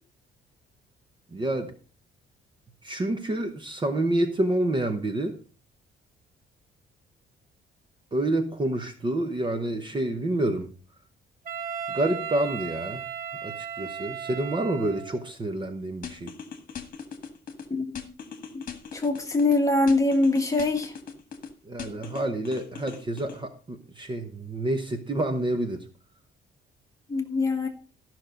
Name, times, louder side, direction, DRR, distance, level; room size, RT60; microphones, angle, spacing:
voice 1, 1.3-1.7 2.8-5.4 8.1-10.7 11.9-13.1 13.4-16.3 21.6-25.9, right 1 dB, 25° right, 7 dB, 1.0 m, -28 dB
Wind instrument woodwind instrument, 11.4-15.3, right 7 dB, 45° right, 1.1 m, -36 dB
sound 1, 16.0-17.7 18.0-19.6 19.9-21.5 21.8-23.4, left 7 dB, 45° left, 1.6 m, -39 dB
voice 2, 17.7-18.0 18.5-18.6 18.9-20.9 27.1-27.7, left 2 dB, 15° left, 3 dB, 1.6 m, -23 dB
13.5 x 6.1 x 5.1 m, 0.37 s
cardioid pair, 165°, 20 cm